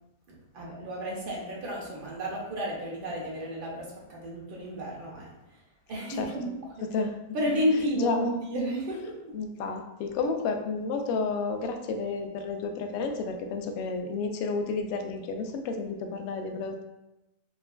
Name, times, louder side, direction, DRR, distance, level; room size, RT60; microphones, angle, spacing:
voice 1, 0.3-5.6 5.9-6.8 7.3-9.3, equal, 45° right, -3 dB, 0.6 m, -32 dB
voice 2, 9.3-16.8, left 4 dB, 40° left, 5 dB, 0.3 m, -31 dB
2.8 x 2.3 x 2.3 m, 0.98 s
supercardioid pair, 165°, 0 cm